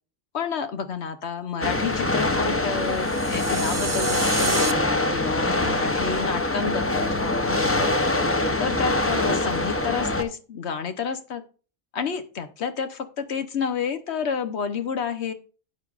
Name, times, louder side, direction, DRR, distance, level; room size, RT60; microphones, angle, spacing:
voice 1, 0.3-8.0 8.6-11.4 11.9-15.3, left 6 dB, 75° left, 10 dB, 1.2 m, -30 dB
sound 1, 1.6-10.2, left 2 dB, 15° left, 0.6 m, -24 dB
sound 2, 2.9-4.7, right 4 dB, 25° right, 0.6 m, -30 dB
12.0 x 8.1 x 2.5 m, 0.37 s
omnidirectional pair, 1.1 m